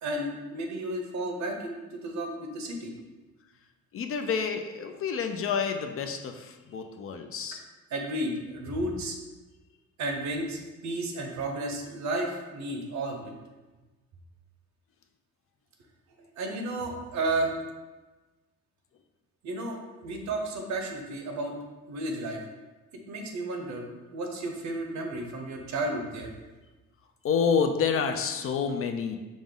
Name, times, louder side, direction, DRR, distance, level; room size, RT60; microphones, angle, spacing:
voice 1, 0.0-2.9 7.9-9.1 10.0-13.3 16.2-17.5 19.4-21.5 21.9-22.4 23.1-26.3, right 2 dB, 65° right, 3 dB, 0.7 m, -33 dB
voice 2, 3.9-7.6 27.2-29.2, left 6 dB, 45° left, 6 dB, 0.4 m, -28 dB
5.0 x 2.0 x 3.7 m, 1.2 s
cardioid pair, 90°, 30 cm